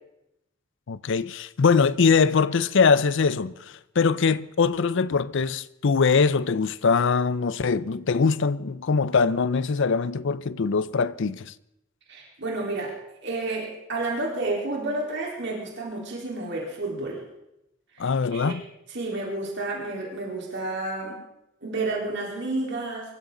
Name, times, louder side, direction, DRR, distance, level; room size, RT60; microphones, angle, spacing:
voice 1, 0.9-11.5 18.0-18.6, left 5 dB, 60° left, 0.5 m, -22 dB
voice 2, 12.1-13.0 13.2-17.2 17.9-18.5 18.9-21.2 21.6-23.1, right 2 dB, 60° right, 3.9 m, -30 dB
23.5 x 14.0 x 3.9 m
head